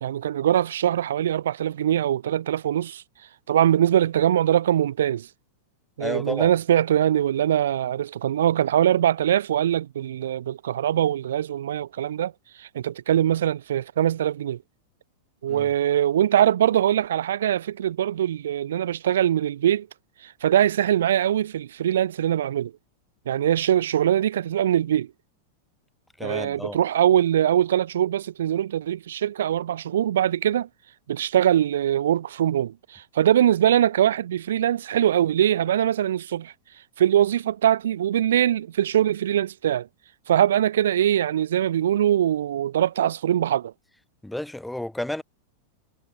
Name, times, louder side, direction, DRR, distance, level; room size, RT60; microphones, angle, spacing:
voice 1, 0.0-3.0 3.5-5.3 6.0-12.3 12.6-14.6 15.4-19.9 20.2-22.7 23.3-25.1 26.2-30.7 31.1-36.5 37.0-39.9 40.3-43.7, right 11 dB, 70° right, 0.7 m, -22 dB
voice 2, 6.0-6.5 15.5-15.7 26.2-26.8 44.2-45.2, left 1 dB, 5° left, 6.6 m, -31 dB
figure-of-eight pair, 95°, 0 cm